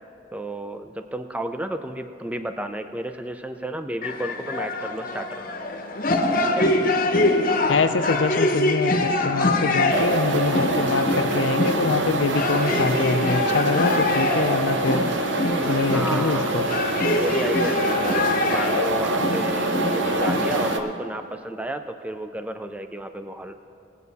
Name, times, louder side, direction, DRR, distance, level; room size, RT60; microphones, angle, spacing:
voice 1, 0.3-5.5 6.4-6.7 15.6-16.5 17.1-23.6, right 1 dB, 5° right, 8 dB, 0.4 m, -32 dB
sound 1, 4.0-20.9, left 2 dB, 45° left, 0.8 m, -25 dB
voice 2, 7.7-15.1 15.7-16.7, left 4 dB, 75° left, 9 dB, 0.6 m, -24 dB
sound 2, 9.9-20.8, right 2 dB, 75° right, 0.7 m, -25 dB
18.5 x 8.4 x 4.1 m, 2.6 s
head